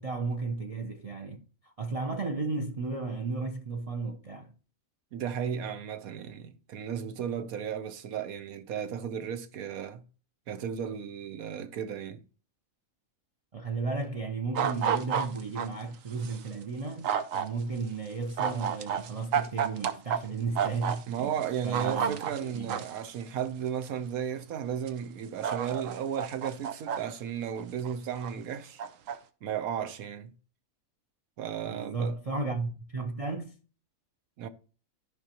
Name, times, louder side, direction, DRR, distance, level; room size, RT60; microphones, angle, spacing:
voice 1, 0.0-4.5 13.5-21.3 21.6-22.9 31.7-33.6, right 3 dB, 40° right, 0.5 m, -34 dB
voice 2, 5.1-10.0 10.5-12.3 21.1-28.8 29.4-30.3 31.4-32.1 34.4-34.5, right 8 dB, 90° right, 1.2 m, -34 dB
sound 1, 14.5-15.7 16.2-16.4 17.0-17.4 18.4-20.2 20.5-21.0 21.4-23.0 23.8-23.9 24.9-25.0 25.4-27.0 27.6-28.3 28.8-29.2, right 8 dB, 70° right, 1.0 m, -30 dB
13.0 x 5.1 x 2.9 m
omnidirectional pair, 1.4 m